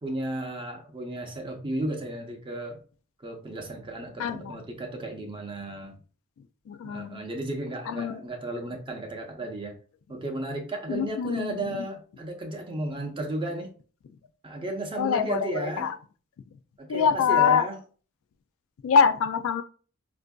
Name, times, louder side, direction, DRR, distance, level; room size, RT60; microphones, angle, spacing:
voice 1, 0.0-2.8 3.2-6.0 6.8-9.7 10.1-13.7 14.4-15.9 16.8-17.8, right 1 dB, 25° right, 0.6 m, -34 dB
voice 2, 4.2-4.6 6.7-7.2 7.9-8.2 10.9-11.7 15.0-15.9 16.9-17.7 18.8-19.6, left 6 dB, 65° left, 0.3 m, -24 dB
4.3 x 2.5 x 2.2 m
head